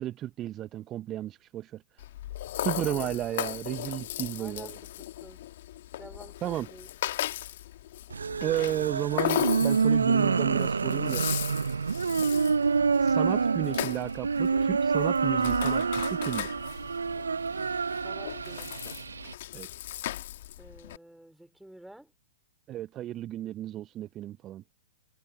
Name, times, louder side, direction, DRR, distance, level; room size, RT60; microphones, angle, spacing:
voice 1, 0.0-2.0 2.5-4.7 6.4-6.7 8.4-11.3 13.0-16.5 19.5-19.7 22.7-24.6, right 13 dB, 30° right, 0.7 m, -33 dB
Rattle (instrument), 2.0-21.0, left 14 dB, 55° left, 1.9 m, -37 dB
voice 2, 2.7-3.2 4.4-5.5 6.0-6.9 18.0-19.0 20.6-22.1, right 1 dB, ahead, 4.7 m, -50 dB
sound 1, 8.1-19.3, right 5 dB, 80° right, 0.6 m, -27 dB
figure-of-eight pair, 110°, 0 cm